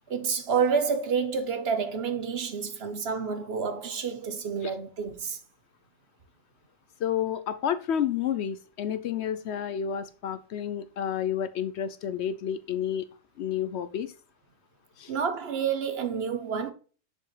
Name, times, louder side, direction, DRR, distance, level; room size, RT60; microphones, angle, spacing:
voice 1, 0.1-5.4 15.1-16.7, right 6 dB, 55° right, 1.0 m, -29 dB
voice 2, 7.0-13.1 13.4-14.1 15.0-15.1, left 9 dB, 65° left, 0.8 m, -30 dB
6.5 x 5.2 x 3.2 m
omnidirectional pair, 1.3 m